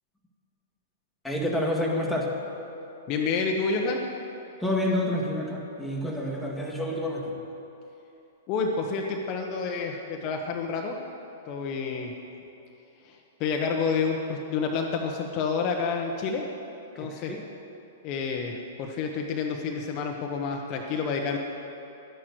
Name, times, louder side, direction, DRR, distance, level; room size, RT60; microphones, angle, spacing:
voice 1, 1.2-2.3 4.6-7.4 17.0-17.4, left 1 dB, ahead, -3 dB, 1.9 m, -28 dB
voice 2, 3.1-4.0 8.5-11.0 11.5-12.1 13.0-16.4 17.0-17.3 18.0-21.4, left 5 dB, 40° left, 1 dB, 1.1 m, -29 dB
11.5 x 10.0 x 6.2 m, 3.0 s
figure-of-eight pair, 110°, 0 cm